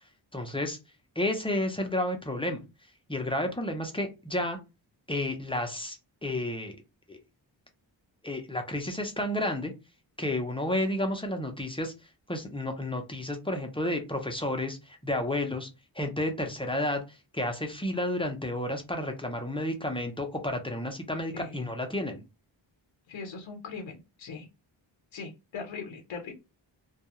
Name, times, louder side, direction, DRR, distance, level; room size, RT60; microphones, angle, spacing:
voice 1, 0.3-0.8 1.2-2.6 3.1-4.6 5.1-6.8 7.1-7.2 8.2-9.7 10.2-11.9 12.3-15.7 16.0-22.2, left 1 dB, 10° left, 4 dB, 0.5 m, -31 dB
voice 2, 23.1-24.5 25.1-26.3, left 5 dB, 90° left, 3 dB, 0.7 m, -40 dB
2.3 x 2.3 x 2.9 m, 0.26 s
wide cardioid pair, 100°, 45 cm